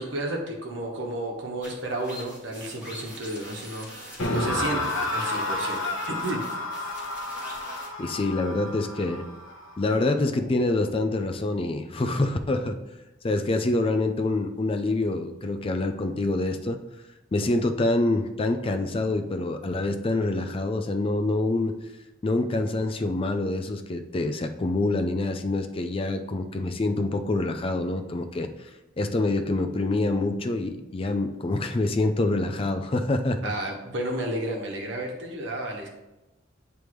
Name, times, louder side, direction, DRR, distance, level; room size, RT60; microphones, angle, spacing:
voice 1, 0.0-5.8 6.1-6.4 33.4-35.9, right 1 dB, 65° right, 0 dB, 1.3 m, -32 dB
sound 1, 1.6-7.9, equal, 10° right, 2.1 m, -44 dB
sound 2, 4.2-11.3, left 2 dB, 90° left, 0.9 m, -31 dB
voice 2, 8.0-9.2 9.8-12.8 13.2-16.8 17.3-21.7 22.2-28.5 29.0-33.5, left 2 dB, 30° left, 7 dB, 0.4 m, -26 dB
9.1 x 3.4 x 3.2 m, 1.0 s
head